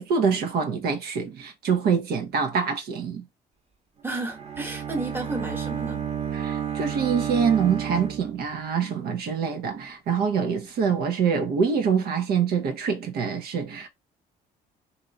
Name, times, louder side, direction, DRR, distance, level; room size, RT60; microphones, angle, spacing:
voice 1, 0.0-3.2 6.3-13.9, right 6 dB, 70° right, 0.9 m, -25 dB
voice 2, 4.0-6.0, right 2 dB, 15° right, 1.2 m, -32 dB
Bowed string instrument, 4.2-8.9, right 8 dB, 40° right, 1.2 m, -32 dB
3.0 x 2.7 x 4.0 m
cardioid pair, 110°, 17 cm